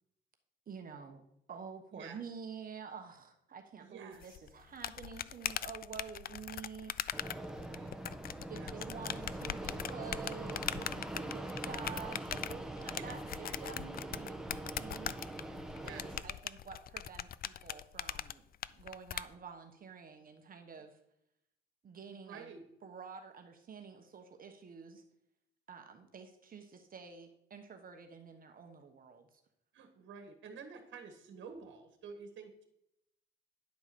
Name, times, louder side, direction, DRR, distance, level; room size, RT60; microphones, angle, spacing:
voice 1, 0.7-1.2 1.5-7.1 8.5-13.2 13.6-15.1 15.9-18.4 18.7-21.0 21.8-22.5 22.8-25.0 25.7-29.3, right 6 dB, 45° right, 5 dB, 1.1 m, -49 dB
voice 2, 3.8-4.4 7.7-7.9 8.5-9.0 12.9-13.2 15.7-16.3 22.1-22.6 29.7-32.6, right 5 dB, 70° right, 6 dB, 1.5 m, -50 dB
sound 1, 4.2-19.2, left 10 dB, 50° left, 0.4 m, -41 dB
Fixed-wing aircraft airplane, 7.1-16.2, right 1 dB, ahead, 1.2 m, -43 dB
10.5 x 4.7 x 6.8 m, 0.80 s
cardioid pair, 90°, 20 cm